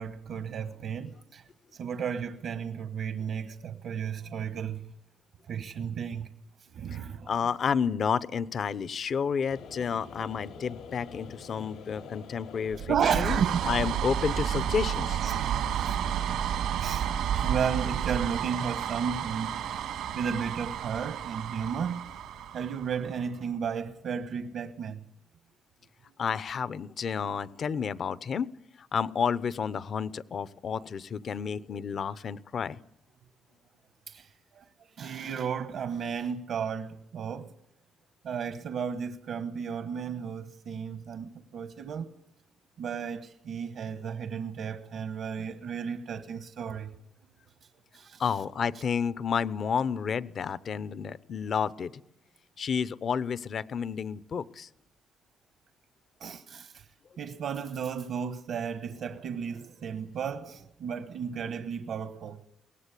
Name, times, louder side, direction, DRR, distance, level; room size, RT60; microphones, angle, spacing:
voice 1, 0.0-1.4 1.7-4.9 5.5-6.3 6.7-7.3 12.9-13.6 15.2-15.4 15.9-16.0 16.8-17.1 17.4-19.5 20.1-22.1 22.5-25.0 34.1-37.5 38.2-42.1 42.8-46.9 47.9-48.2 56.2-56.9 57.2-62.4, right 7 dB, 70° right, 1.2 m, -33 dB
voice 2, 6.9-15.2 26.2-28.5 28.8-32.8 48.2-51.9 52.6-54.7, left 6 dB, 55° left, 0.8 m, -31 dB
sound 1, 9.5-24.7, left 6 dB, 90° left, 5.1 m, -50 dB
sound 2, 12.7-23.2, right 9 dB, 85° right, 2.2 m, -31 dB
23.0 x 18.0 x 8.4 m
cardioid pair, 90°, 0 cm